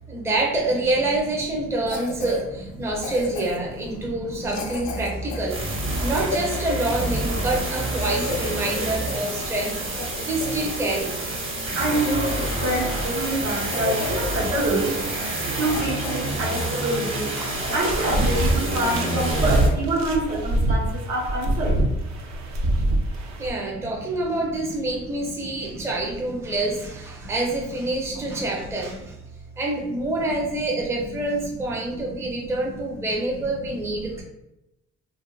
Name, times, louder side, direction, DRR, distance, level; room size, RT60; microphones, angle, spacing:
voice 1, 0.1-9.8 10.3-11.2 17.4-17.5 23.4-29.1 29.6-34.2, right 2 dB, 10° right, -1 dB, 0.4 m, -26 dB
Cough, 1.9-2.4 3.0-3.7 4.5-7.2 7.6-7.7 7.9-9.3 9.6-11.1 11.5-11.6 11.9-12.8 13.1-13.3 13.7-14.3 14.5-14.8 15.3-15.4 15.7-16.8 17.2-17.3 17.7-18.4 18.7-18.8 19.1-19.4 19.6-19.8 20.3-20.5, left 3 dB, 70° left, 0.5 m, -33 dB
voice 2, 3.9-4.6 5.0-5.1 5.6-6.1 9.2-9.3 11.7-15.0 15.5-17.3 17.7-22.0 23.7-24.0 24.6-24.8 25.4-25.9 26.4-26.5 27.2-27.3 28.0-28.5 30.7-30.8 31.4-31.5 31.9-32.5 32.9-33.0 33.7-34.2, right 2 dB, 80° right, -4 dB, 1.0 m, -28 dB
sound 1, 5.5-19.7, right 2 dB, 45° right, 0.9 m, -28 dB
sound 2, 17.6-23.5, right 1 dB, 60° right, 0.5 m, -24 dB
2.9 x 2.3 x 2.3 m, 0.90 s
cardioid pair, 90°, 30 cm